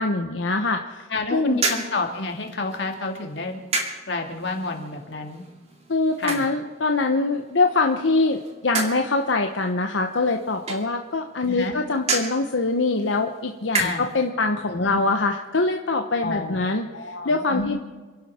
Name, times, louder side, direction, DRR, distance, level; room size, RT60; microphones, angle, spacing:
voice 1, 0.0-1.6 5.9-17.8, left 3 dB, 90° left, 4 dB, 1.0 m, -24 dB
voice 2, 1.1-3.6 4.1-5.4 6.2-6.4 11.5-11.8 13.7-14.0 14.7-15.0 16.2-16.6 16.9-17.8, left 3 dB, 65° left, 2 dB, 2.5 m, -29 dB
sound 1, 1.5-14.3, right 3 dB, 35° right, 2.5 m, -33 dB
28.0 x 11.5 x 4.4 m, 1.4 s
head